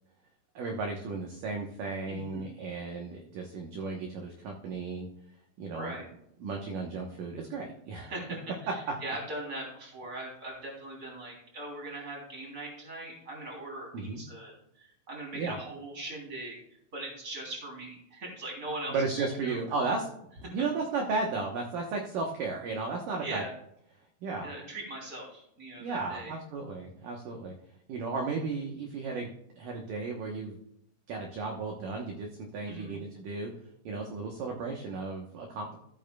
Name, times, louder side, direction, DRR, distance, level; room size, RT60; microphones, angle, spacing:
voice 1, 0.6-5.1 5.6-6.0 6.4-8.1 13.9-14.2 15.3-15.6 18.9-23.4 24.2-24.5 25.8-27.5 27.9-29.3 29.6-30.6 31.1-33.5 33.9-35.8, right 4 dB, 65° right, 1 dB, 2.3 m, -34 dB
voice 2, 2.1-2.5 5.7-6.1 8.0-16.6 16.9-19.6 20.4-20.5 23.2-23.5 24.4-26.3 32.7-33.0, right 1 dB, 20° right, -1 dB, 3.1 m, -40 dB
14.5 x 9.2 x 2.3 m, 0.76 s
omnidirectional pair, 4.8 m